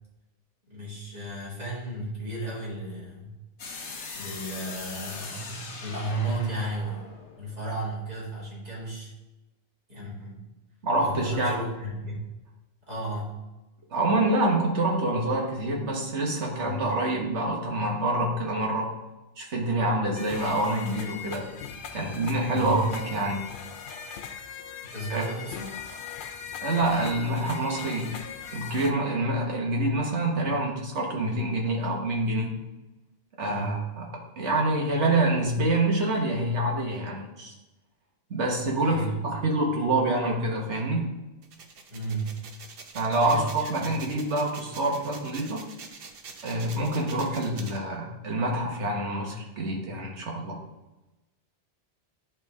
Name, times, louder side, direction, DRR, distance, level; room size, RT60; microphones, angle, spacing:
voice 1, 0.7-3.4 4.1-7.1 7.4-9.1 9.9-10.4 11.0-12.1 12.9-13.3 16.6-16.8 22.5-22.8 24.9-25.7 33.5-33.8 38.8-39.3 41.9-42.4 43.2-44.0, right 2 dB, 35° right, -6 dB, 2.4 m, -34 dB
sound 1, 3.6-8.4, left 4 dB, 75° left, 1.2 m, -41 dB
voice 2, 10.8-11.6 13.9-18.9 19.4-21.5 21.9-23.5 25.1-25.2 26.6-28.1 28.5-32.5 33.4-34.1 34.4-37.5 38.3-41.1 42.9-45.6 46.4-50.6, right 2 dB, 75° right, -1 dB, 1.7 m, -26 dB
sound 2, 20.1-28.9, left 7 dB, 55° left, 0.7 m, -40 dB
sound 3, 41.4-47.8, right 5 dB, 55° right, 0.9 m, -45 dB
10.5 x 3.6 x 3.5 m, 1.0 s
omnidirectional pair, 1.2 m